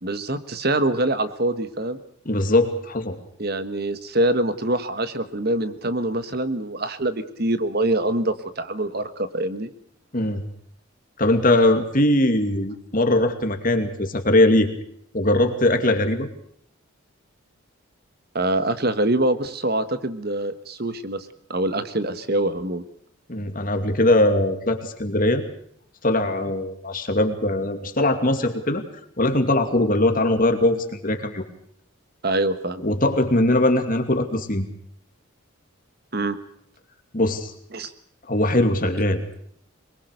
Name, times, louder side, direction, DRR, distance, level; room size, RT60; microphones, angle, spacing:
voice 1, 0.0-2.0 3.4-9.7 18.3-22.8 32.2-32.8 36.1-36.4 37.7-37.9, right 1 dB, 50° right, 11 dB, 1.4 m, -24 dB
voice 2, 2.3-3.2 10.1-10.4 11.2-14.7 15.1-16.3 23.3-25.4 26.0-28.8 29.2-31.4 32.8-34.7 37.1-37.5 38.3-39.2, left 1 dB, 40° left, 6 dB, 2.6 m, -21 dB
23.5 x 21.5 x 6.7 m, 0.66 s
head